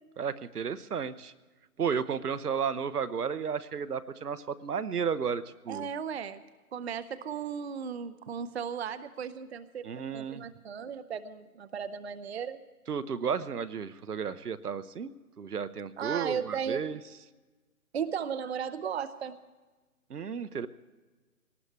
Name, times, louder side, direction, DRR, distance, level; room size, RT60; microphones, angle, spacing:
voice 1, 0.2-1.3 1.8-5.9 9.8-10.4 12.9-15.1 15.4-17.0 20.1-20.7, right 6 dB, 75° right, 12 dB, 0.9 m, -33 dB
voice 2, 5.7-6.4 6.7-9.9 10.1-12.6 16.0-16.8 17.9-19.4, right 7 dB, 45° right, 12 dB, 0.6 m, -35 dB
22.0 x 18.5 x 3.3 m, 1.3 s
figure-of-eight pair, 145°, 46 cm